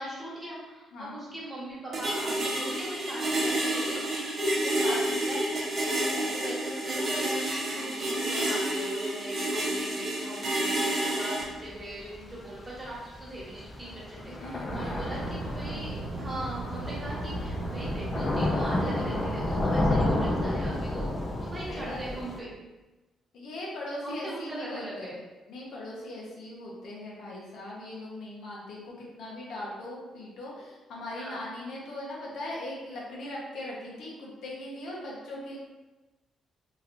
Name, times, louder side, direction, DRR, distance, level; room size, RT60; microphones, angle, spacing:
voice 1, 0.0-4.2 4.7-5.6 6.3-7.4 7.7-22.5 24.0-25.2 31.1-31.4, right 1 dB, 20° right, -6 dB, 1.3 m, -40 dB
sound 1, 1.9-11.4, right 1 dB, 45° right, 0.9 m, -29 dB
voice 2, 4.6-5.2 5.9-6.5 7.7-8.0 14.3-15.0 21.7-22.2 23.3-25.2 25.5-35.6, left 1 dB, 75° left, -4 dB, 0.8 m, -40 dB
Thunder / Rain, 11.4-22.4, left 1 dB, 30° left, 0.5 m, -31 dB
sound 2, 14.7-19.9, right 2 dB, 80° right, 0.4 m, -37 dB
2.9 x 2.9 x 2.5 m, 1.1 s
cardioid pair, 90°, 0 cm